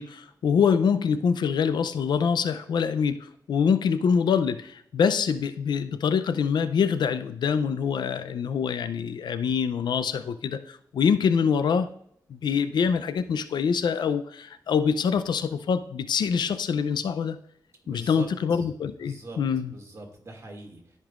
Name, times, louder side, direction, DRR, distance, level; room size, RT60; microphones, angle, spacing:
voice 1, 0.0-11.9 12.3-17.4 17.9-19.7, left 6 dB, 85° left, 11 dB, 0.5 m, -25 dB
voice 2, 17.8-18.3 19.0-19.4 19.7-21.0, right 2 dB, 40° right, 1 dB, 2.3 m, -43 dB
13.5 x 5.4 x 2.5 m, 0.69 s
wide cardioid pair, 90°, 7 cm